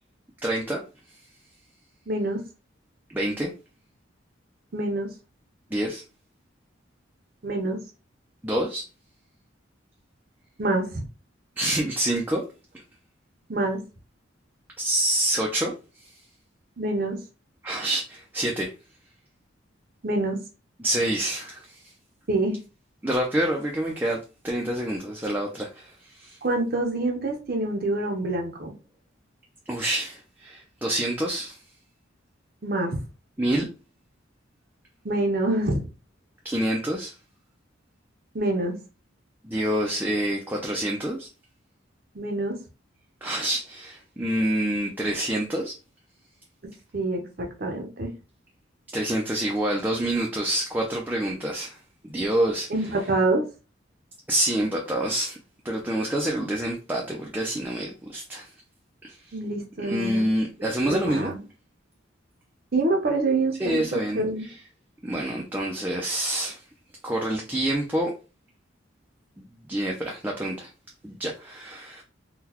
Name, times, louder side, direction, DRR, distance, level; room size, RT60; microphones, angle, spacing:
voice 1, 0.4-0.8 3.1-3.5 5.7-6.0 8.4-8.8 11.6-12.4 14.8-15.7 16.0-16.1 17.6-18.7 20.8-21.8 23.0-26.4 29.7-31.6 33.4-33.7 36.4-37.1 39.4-41.3 43.2-45.7 48.9-51.8 52.0-52.7 54.3-55.4 55.6-58.5 59.0-59.2 59.8-61.3 63.6-64.5 65.0-66.6 67.0-68.1 69.4-70.7 71.0-72.0, right 1 dB, 10° right, 0.4 m, -27 dB
voice 2, 2.1-2.4 4.7-5.1 7.4-7.8 10.6-11.0 13.5-13.8 16.8-17.2 20.0-20.4 22.3-22.6 26.4-28.7 32.6-33.0 35.0-35.9 38.3-38.8 42.1-42.6 46.9-48.1 52.7-53.4 59.3-60.3 60.9-61.4 62.7-63.8 64.1-64.5, right 2 dB, 50° right, 0.6 m, -26 dB
3.8 x 2.2 x 2.9 m
head